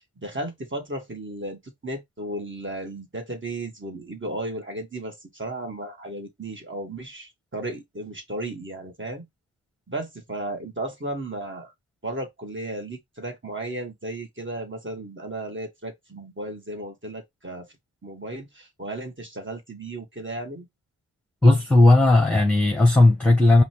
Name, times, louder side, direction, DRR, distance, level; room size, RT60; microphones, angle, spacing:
voice 1, 0.2-9.3 9.9-11.7 12.0-17.7 18.0-20.7, right 1 dB, 25° right, 1.9 m, -34 dB
voice 2, 21.4-23.6, left 2 dB, 5° left, 1.3 m, -16 dB
5.1 x 2.3 x 4.6 m
cardioid pair, 50°, 43 cm